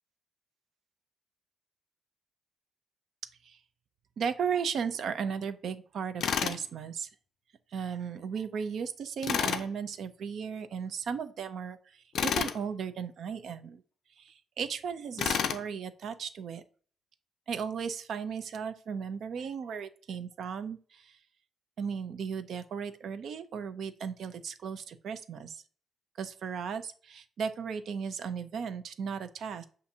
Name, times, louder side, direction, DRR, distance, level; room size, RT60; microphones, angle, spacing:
voice 1, 4.2-7.1 7.7-13.8 14.2-16.6 17.5-21.2 21.8-25.6 26.2-29.7, right 6 dB, 55° right, 10 dB, 0.4 m, -36 dB
Tools, 6.2-6.6 9.2-9.7 12.2-12.6 15.2-15.6, left 8 dB, 60° left, 0.4 m, -29 dB
7.0 x 2.5 x 2.7 m, 0.42 s
cardioid pair, 170°, 0 cm